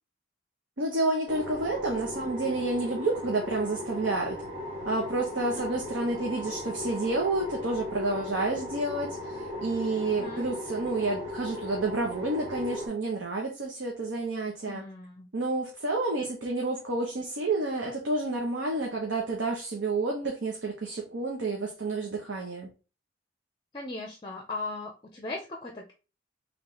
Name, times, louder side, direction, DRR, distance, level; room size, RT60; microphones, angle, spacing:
voice 1, 0.8-4.4 4.9-14.8 15.3-22.7, right 2 dB, 85° right, 0.9 m, -30 dB
sound 1, 1.3-12.9, left 1 dB, 40° right, 1.6 m, -37 dB
voice 2, 5.4-5.8 10.1-10.5 14.6-15.3 23.7-25.9, left 2 dB, 25° left, 0.6 m, -38 dB
3.2 x 3.2 x 3.8 m
head